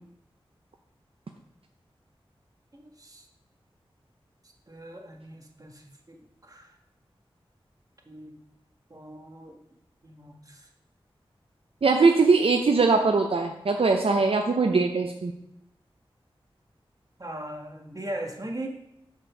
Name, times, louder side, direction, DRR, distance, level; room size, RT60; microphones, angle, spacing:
voice 1, 2.7-3.2 4.7-5.8 6.1-6.2 6.5-6.7 8.1-8.4 8.9-9.6 10.0-10.6 17.2-18.7, right 1 dB, 35° right, 2 dB, 1.5 m, -39 dB
voice 2, 11.8-15.3, right 4 dB, 70° right, 4 dB, 0.6 m, -21 dB
7.8 x 4.5 x 6.3 m, 0.83 s
wide cardioid pair, 45°, 10 cm